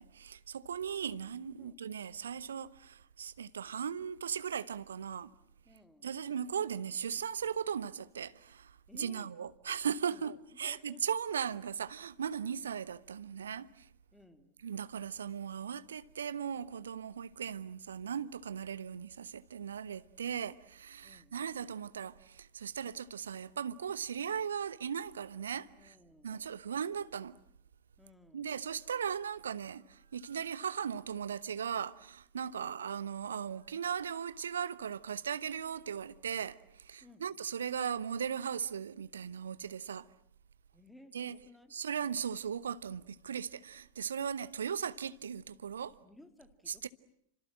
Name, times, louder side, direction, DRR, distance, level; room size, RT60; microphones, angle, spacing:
voice 1, 0.0-5.3 6.0-13.9 14.6-25.9 26.2-27.4 28.3-40.1 41.1-41.4 41.7-46.0 46.7-46.9, right 7 dB, 65° right, 1.0 m, -38 dB
voice 2, 5.7-6.2 8.9-9.3 10.1-10.3 10.6-11.1 14.1-14.6 21.0-21.4 25.8-26.6 28.0-28.6 32.5-32.9 37.0-37.3 40.7-41.8 45.2-45.3 46.0-46.9, left 1 dB, 5° left, 2.8 m, -59 dB
29.0 x 26.0 x 7.6 m
figure-of-eight pair, 90°, 0 cm